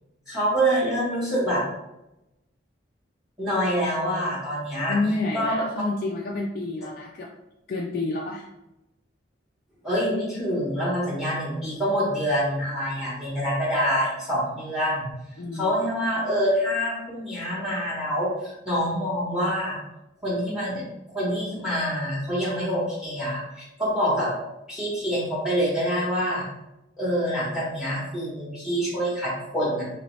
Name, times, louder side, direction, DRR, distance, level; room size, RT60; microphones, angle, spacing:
voice 1, 0.3-1.6 3.4-5.0 5.3-5.5 9.8-15.1 15.5-19.8 20.2-20.8 21.1-24.3 24.7-26.5 27.0-29.8, equal, ahead, -6 dB, 0.9 m, -26 dB
voice 2, 4.9-7.3 7.7-8.5 15.4-15.7 24.1-24.2, left 2 dB, 50° left, -2 dB, 0.3 m, -29 dB
2.9 x 2.8 x 3.1 m, 0.92 s
head